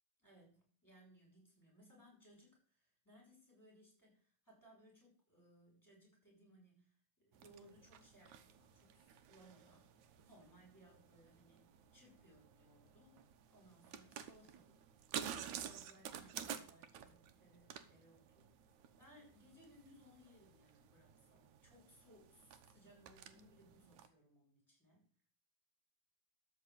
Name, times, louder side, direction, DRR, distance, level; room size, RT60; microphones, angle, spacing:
voice 1, 0.2-14.8 15.3-18.5 19.0-25.1, equal, 5° left, -2 dB, 7.6 m, -65 dB
sound 1, 7.3-24.1, right 9 dB, 75° right, 2.3 m, -52 dB
13.0 x 5.2 x 8.5 m, 0.43 s
omnidirectional pair, 3.5 m